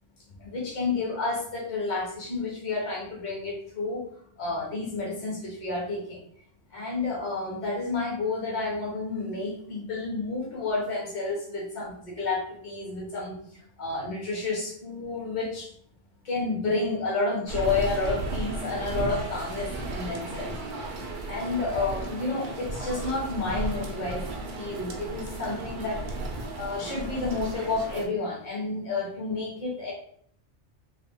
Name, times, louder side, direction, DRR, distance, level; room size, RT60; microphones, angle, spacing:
voice 1, 0.4-4.0 4.4-6.2 6.7-15.7 16.2-20.5 21.2-24.2 24.5-26.0 26.5-29.9, left 3 dB, 40° left, -4 dB, 1.2 m, -30 dB
sound 1, 17.5-28.1, right 2 dB, 55° right, 0.6 m, -34 dB
3.1 x 2.4 x 3.5 m, 0.62 s
omnidirectional pair, 1.2 m